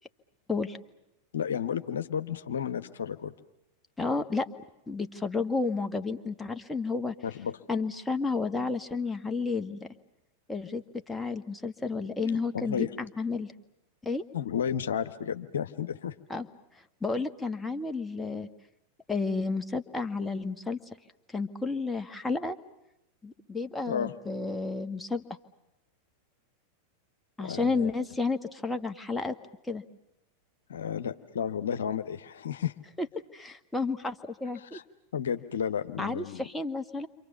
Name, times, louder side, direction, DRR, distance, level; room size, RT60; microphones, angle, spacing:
voice 1, 1.3-3.3 7.2-7.6 12.2-12.9 14.3-16.1 23.9-24.1 27.4-27.9 30.7-32.7 34.6-34.8 35.1-36.5, left 8 dB, 65° left, 10 dB, 1.2 m, -32 dB
voice 2, 4.0-4.5 4.9-7.1 7.7-9.9 10.5-13.5 14.0-14.2 16.3-16.5 17.0-18.5 19.1-20.8 21.3-22.6 23.2-25.2 27.4-29.3 29.7-29.8 33.0-33.1 33.3-34.8 36.0-37.1, left 4 dB, 5° left, 6 dB, 1.6 m, -31 dB
29.5 x 26.5 x 7.0 m, 0.86 s
figure-of-eight pair, 90°, 0 cm